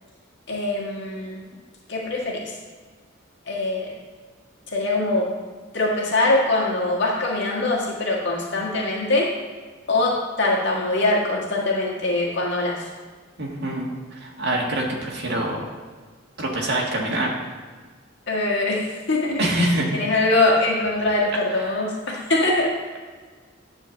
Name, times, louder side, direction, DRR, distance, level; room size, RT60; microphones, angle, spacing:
voice 1, 0.5-1.4 1.9-2.5 3.5-3.9 4.7-5.3 5.7-9.3 9.9-12.8 18.3-22.8, left 2 dB, 65° left, -3 dB, 1.8 m, -23 dB
voice 2, 13.4-15.6 16.4-17.3 19.4-19.9 21.7-21.8, right 1 dB, 60° right, -2 dB, 1.9 m, -25 dB
9.6 x 4.4 x 7.0 m, 1.4 s
head